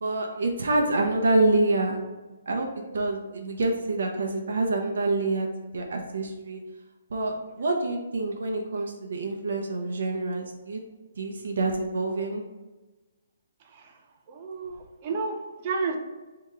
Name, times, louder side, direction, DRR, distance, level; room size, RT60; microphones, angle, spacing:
voice 1, 0.0-2.0 2.5-5.5 5.7-6.6 7.1-10.8 11.2-12.4, right 2 dB, 70° right, 1 dB, 0.7 m, -27 dB
voice 2, 13.6-14.0 14.3-16.0, right 4 dB, 30° right, 3 dB, 0.5 m, -32 dB
3.5 x 2.9 x 4.6 m, 1.2 s
hypercardioid pair, 170°, 0 cm